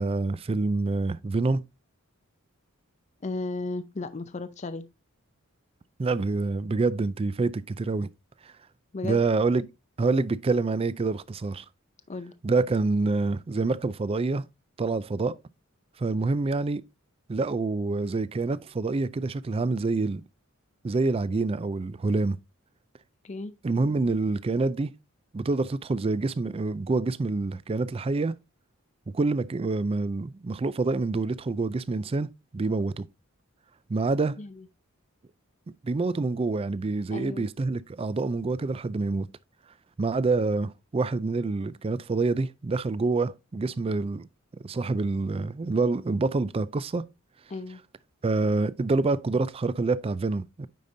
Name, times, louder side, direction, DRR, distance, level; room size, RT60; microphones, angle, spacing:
voice 1, 0.0-1.6 6.0-8.1 8.4-8.5 9.0-9.7 10.0-11.6 12.4-14.4 14.8-15.3 16.0-16.8 17.3-20.2 20.8-22.4 23.6-24.9 25.3-28.4 29.1-32.3 32.5-33.1 33.9-34.4 35.8-39.3 40.0-44.3 44.6-47.0 48.2-50.7, right 3 dB, 25° right, 0.4 m, -27 dB
voice 2, 3.2-4.9 8.9-9.2 12.1-12.3 23.2-23.5 34.4-34.6 37.1-37.5 47.5-47.8, left 3 dB, 35° left, 0.5 m, -34 dB
9.3 x 5.1 x 2.7 m
head